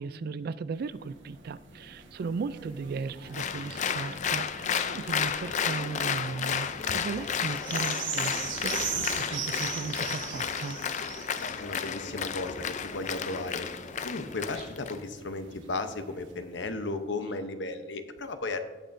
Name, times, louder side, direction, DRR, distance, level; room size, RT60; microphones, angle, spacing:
voice 1, 0.0-10.8, right 4 dB, 55° right, 16 dB, 0.3 m, -36 dB
sound 1, 0.8-16.6 17.2-17.3, right 6 dB, 85° right, 1.4 m, -41 dB
Applause, 3.3-15.0, left 7 dB, 40° left, 0.4 m, -32 dB
voice 2, 11.2-13.7 14.0-18.6, left 2 dB, 70° left, 8 dB, 0.8 m, -35 dB
17.5 x 6.2 x 2.6 m, 1.4 s
head